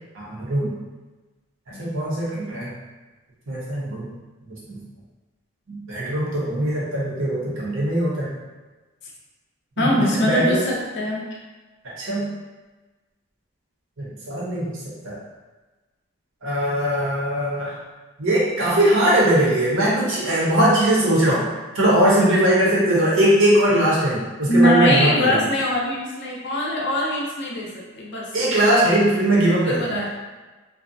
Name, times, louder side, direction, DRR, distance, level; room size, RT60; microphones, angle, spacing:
voice 1, 0.1-0.8 1.8-2.7 3.5-4.1 4.7-4.8 5.7-8.4 9.8-10.6 12.0-12.3 14.0-14.7 15.0-15.2 16.4-17.8 18.2-21.4 21.7-25.5 28.3-30.0, right 1 dB, 60° right, -6 dB, 0.8 m, -20 dB
voice 2, 9.8-11.2 24.5-28.3 29.6-30.1, equal, 50° left, -2 dB, 0.5 m, -22 dB
2.5 x 2.1 x 2.6 m, 1.2 s
head